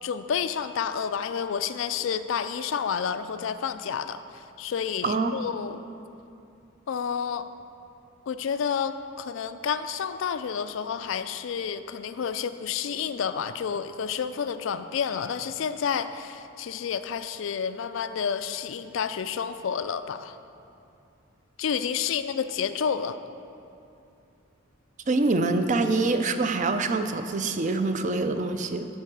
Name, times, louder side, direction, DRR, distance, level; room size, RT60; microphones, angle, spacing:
voice 1, 0.0-5.8 6.9-7.5 8.3-20.4 21.6-23.2, left 7 dB, 70° left, 11 dB, 0.3 m, -30 dB
voice 2, 25.1-28.9, right 3 dB, 35° right, 8 dB, 0.4 m, -25 dB
13.5 x 4.5 x 4.7 m, 2.6 s
head